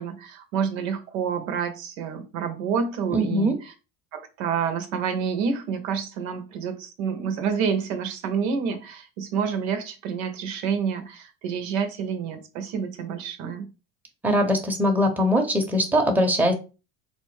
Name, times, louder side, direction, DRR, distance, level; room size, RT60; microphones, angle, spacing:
voice 1, 0.0-3.7 4.1-13.7, right 6 dB, 80° right, 7 dB, 0.8 m, -28 dB
voice 2, 3.1-3.6 14.2-16.5, equal, 5° right, 2 dB, 0.8 m, -21 dB
4.0 x 2.1 x 3.2 m, 0.31 s
supercardioid pair, 85°, 39 cm